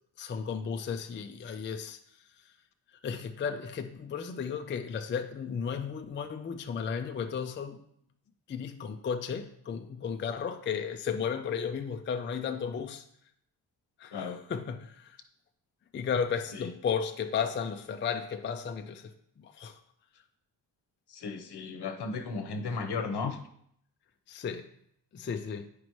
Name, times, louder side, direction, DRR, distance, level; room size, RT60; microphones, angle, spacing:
voice 1, 0.2-2.0 2.4-2.5 3.0-7.8 8.5-13.0 14.0-15.2 15.9-19.8 24.3-24.7 25.1-25.7, left 6 dB, 30° left, 0.3 m, -34 dB
voice 2, 21.1-23.4, left 4 dB, 70° left, 0.9 m, -35 dB
9.7 x 5.2 x 3.1 m
wide cardioid pair, 160°, 42 cm